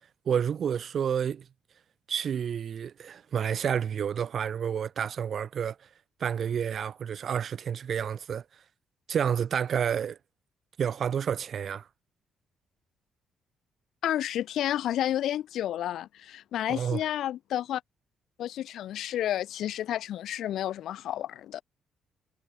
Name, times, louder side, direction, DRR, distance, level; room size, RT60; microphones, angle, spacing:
voice 1, 0.2-1.5 2.1-5.8 6.2-8.4 9.1-10.2 10.8-11.9 16.7-17.0, right 8 dB, 55° right, 3.3 m, -29 dB
voice 2, 14.0-17.8 18.4-21.6, left 12 dB, 75° left, 2.4 m, -31 dB
cardioid pair, 90°, 0 cm